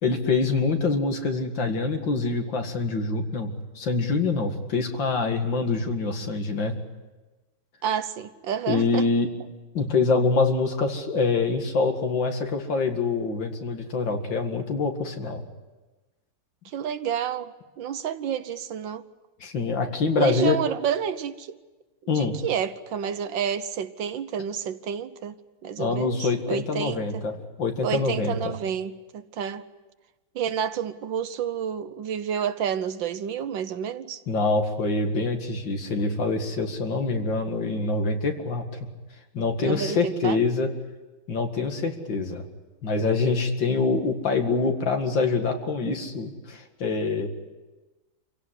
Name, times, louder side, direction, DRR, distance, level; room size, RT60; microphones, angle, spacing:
voice 1, 0.0-6.8 8.7-9.3 9.7-15.4 19.4-20.6 22.1-22.3 25.8-28.3 34.3-38.6 39.3-40.7 41.3-42.4 42.8-47.3, left 4 dB, 65° left, 2.7 m, -25 dB
voice 2, 7.8-9.1 16.6-19.0 20.2-21.5 22.0-25.3 25.6-27.2 27.8-29.6 30.3-34.2 39.6-40.4, right 8 dB, 70° right, 1.6 m, -29 dB
27.0 x 17.0 x 9.8 m
omnidirectional pair, 2.2 m